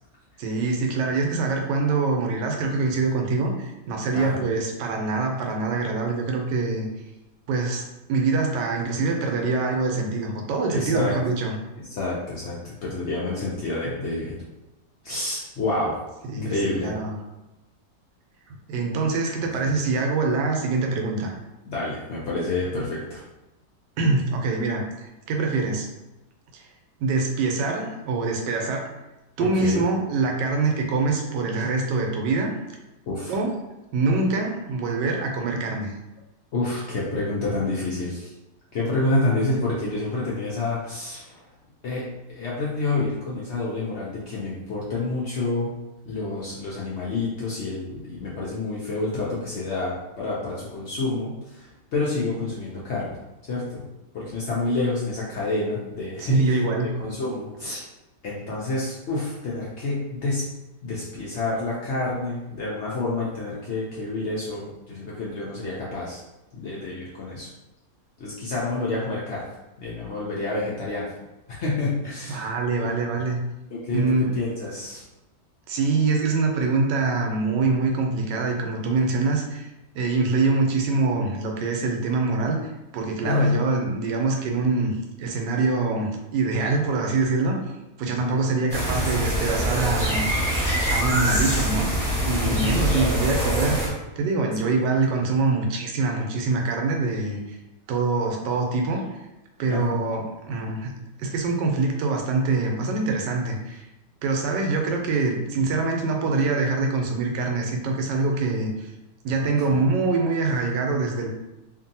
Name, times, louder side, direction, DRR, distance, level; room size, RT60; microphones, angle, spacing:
voice 1, 0.4-6.9 7.5-11.5 16.3-17.2 18.7-21.3 24.0-25.9 26.5-26.7 27.0-28.9 29.4-32.5 33.3-33.5 33.9-35.9 56.2-56.9 72.3-73.4 73.9-74.3 75.7-79.7 79.9-87.6 88.0-90.3 90.9-91.9 92.2-93.8 94.2-97.6 97.9-99.2 99.6-100.9 101.2-103.8 104.2-108.9 109.2-111.3, right 3 dB, 85° right, 2 dB, 1.2 m, -24 dB
voice 2, 10.7-11.1 11.8-14.4 15.0-16.0 16.3-16.9 21.6-23.2 29.4-29.8 33.1-33.4 36.5-38.3 38.7-41.4 41.8-42.0 42.3-45.7 46.0-53.1 53.4-53.9 54.1-56.6 57.0-57.8 58.2-60.4 60.8-66.2 66.5-67.5 68.2-69.4 69.8-71.0 71.5-72.5 72.8-73.0 73.7-75.0 83.2-83.6 88.2-88.4 92.4-92.9 94.6-94.8 99.7-100.0 109.4-109.8, left 2 dB, 75° left, -6 dB, 0.6 m, -28 dB
sound 1, 88.7-93.9, equal, ahead, 0.8 m, -24 dB
2.7 x 2.6 x 2.6 m, 1.0 s
omnidirectional pair, 1.9 m